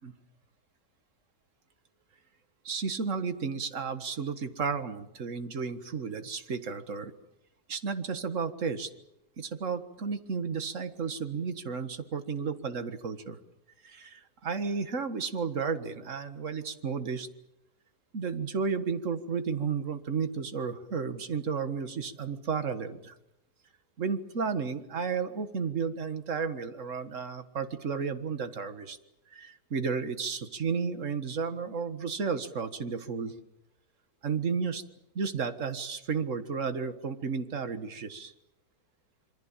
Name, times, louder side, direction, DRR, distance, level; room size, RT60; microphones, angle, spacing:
voice 1, 2.7-7.1 7.7-8.9 9.4-13.4 13.8-17.3 18.1-23.1 24.0-29.0 29.3-33.3 34.2-34.8 35.2-38.3, right 5 dB, 50° right, 9 dB, 1.9 m, -33 dB
27.0 x 25.0 x 7.4 m, 0.86 s
omnidirectional pair, 1.8 m